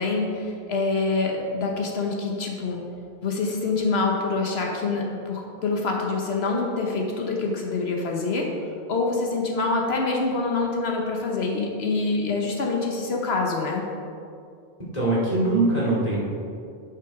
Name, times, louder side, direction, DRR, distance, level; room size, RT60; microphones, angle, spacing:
voice 1, 0.0-2.8 3.2-8.5 8.9-13.8, left 3 dB, 85° left, 0 dB, 1.3 m, -26 dB
voice 2, 14.8-16.2, right 2 dB, 40° left, -7 dB, 2.7 m, -22 dB
10.0 x 5.8 x 4.9 m, 2.4 s
omnidirectional pair, 1.0 m